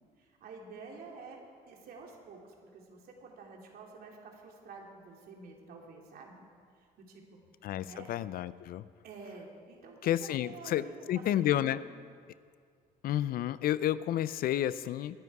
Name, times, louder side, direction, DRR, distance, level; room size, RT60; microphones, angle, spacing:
voice 1, 0.2-6.4 6.8-7.2 7.8-8.1 9.0-11.8, right 4 dB, 65° right, 0 dB, 3.1 m, -49 dB
voice 2, 7.6-8.9 10.0-11.8 13.0-15.2, left 12 dB, 60° left, 16 dB, 0.5 m, -31 dB
21.0 x 11.0 x 4.8 m, 2.1 s
cardioid pair, 110°, 17 cm